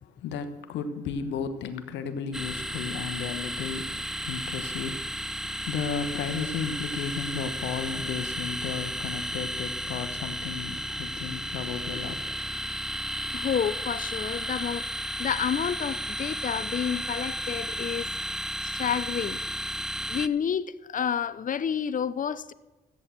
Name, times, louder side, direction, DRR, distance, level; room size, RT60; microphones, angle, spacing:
voice 1, 0.0-12.2, left 6 dB, 80° left, 1.2 m, -34 dB
sound 1, 2.3-20.3, equal, 5° right, 0.6 m, -33 dB
voice 2, 13.3-14.9 15.2-18.1 18.6-19.4 20.1-22.5, left 7 dB, 45° left, 0.8 m, -29 dB
13.5 x 8.3 x 7.6 m
supercardioid pair, 60°, 19 cm